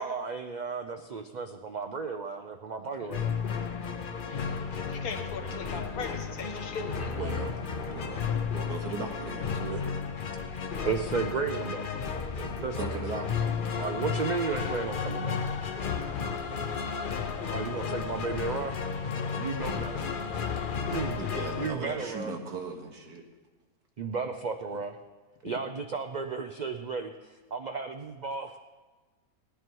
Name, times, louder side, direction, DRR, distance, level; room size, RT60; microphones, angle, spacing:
voice 1, 0.0-3.3 9.6-9.8 10.8-11.9 12.4-12.8 13.7-15.4 17.5-18.8 19.3-20.0 20.9-21.2 21.6-22.3 24.0-25.0 25.4-28.5, right 5 dB, 65° right, 6 dB, 0.4 m, -33 dB
sound 1, 3.1-21.7, left 6 dB, 45° left, 0.8 m, -33 dB
voice 2, 4.2-4.5 4.9-7.2, left 5 dB, 70° left, 5 dB, 1.7 m, -39 dB
voice 3, 7.1-7.6 7.9-8.2 8.5-9.6 12.8-13.5 21.1-23.2, right 3 dB, 90° right, 2 dB, 2.1 m, -38 dB
18.0 x 10.0 x 4.6 m, 1.3 s
omnidirectional pair, 1.6 m